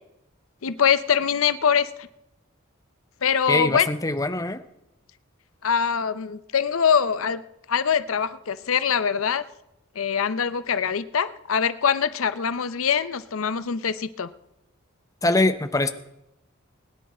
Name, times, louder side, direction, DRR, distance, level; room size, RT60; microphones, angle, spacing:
voice 1, 0.6-2.1 3.2-3.9 5.6-7.4 7.7-9.4 10.0-14.3, left 7 dB, 85° left, 14 dB, 0.6 m, -23 dB
voice 2, 3.5-4.6 15.2-15.9, left 2 dB, 15° left, 10 dB, 0.7 m, -23 dB
21.0 x 10.0 x 4.3 m, 0.88 s
head